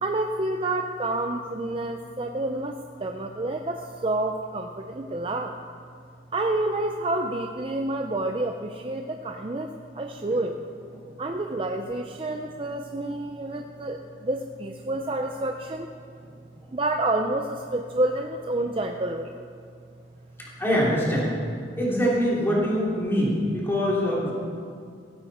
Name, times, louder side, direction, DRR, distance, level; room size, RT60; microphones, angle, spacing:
voice 1, 0.0-5.6 6.3-10.6 11.2-15.9 16.7-19.4, right 2 dB, 30° right, 4 dB, 0.5 m, -29 dB
voice 2, 16.3-16.7 20.4-21.4 21.8-24.3, equal, 15° left, -6 dB, 3.3 m, -25 dB
16.0 x 13.0 x 4.3 m, 2.3 s
head